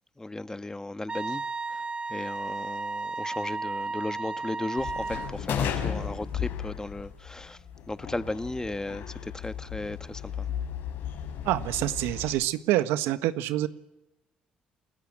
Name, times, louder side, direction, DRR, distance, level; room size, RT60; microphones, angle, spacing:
voice 1, 0.2-1.4 2.1-7.6 7.9-10.5, left 2 dB, 15° left, 1.6 m, -35 dB
Wind instrument woodwind instrument, 1.1-5.3, right 3 dB, 25° right, 1.0 m, -34 dB
sound 1, 4.8-12.3, left 8 dB, 70° left, 6.3 m, -35 dB
voice 2, 11.4-13.7, right 14 dB, 75° right, 1.5 m, -26 dB
28.5 x 20.5 x 8.8 m
hypercardioid pair, 50°, 4 cm